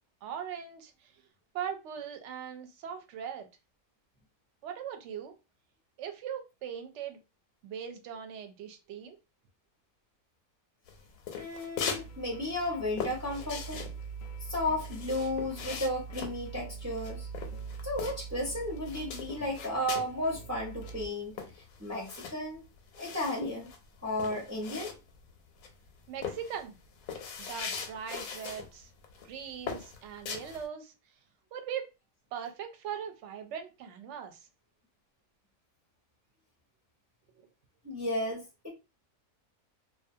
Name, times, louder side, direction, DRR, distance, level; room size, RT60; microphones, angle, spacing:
voice 1, 0.2-1.1 1.5-3.5 4.6-5.3 6.0-7.2 7.6-9.2 26.1-26.8 27.4-28.9 29.2-30.9 31.5-31.9 32.3-34.5 37.4-37.5, right 8 dB, 65° right, 0.8 m, -40 dB
sound 1, 10.9-12.1 12.4-18.5 18.8-20.2 20.5-20.6 20.8-25.3 25.6-25.9 26.2-28.7 29.0-29.3 29.7-30.7, left 6 dB, 90° left, 1.0 m, -40 dB
voice 2, 11.3-13.8 14.4-17.3 17.8-21.4 21.8-22.6 22.9-23.7 24.0-24.9 37.8-38.7, left 1 dB, 15° right, 0.6 m, -33 dB
sound 2, 11.9-21.1, right 5 dB, 65° left, 0.7 m, -44 dB
2.4 x 2.2 x 2.6 m
omnidirectional pair, 1.5 m